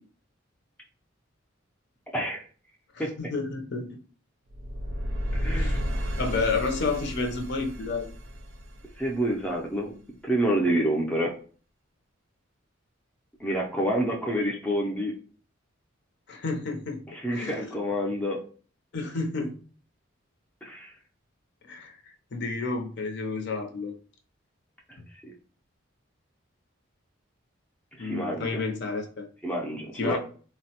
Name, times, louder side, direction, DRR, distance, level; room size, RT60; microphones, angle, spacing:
voice 1, 3.2-3.9 5.4-5.8 6.2-8.1 16.3-17.0 17.3-17.6 18.9-19.5 21.6-22.0 22.3-23.9 28.0-29.3 29.9-30.2, left 3 dB, 55° left, 3 dB, 0.5 m, -30 dB
sound 1, 4.5-9.5, equal, 70° right, 0.5 m, -32 dB
voice 2, 5.4-5.8 9.0-9.9 10.2-11.3 13.4-15.1 17.1-18.4 20.6-20.9 25.2-25.3 28.0-28.5 29.4-30.2, equal, 5° left, -2 dB, 0.4 m, -27 dB
3.8 x 2.0 x 2.8 m, 0.41 s
head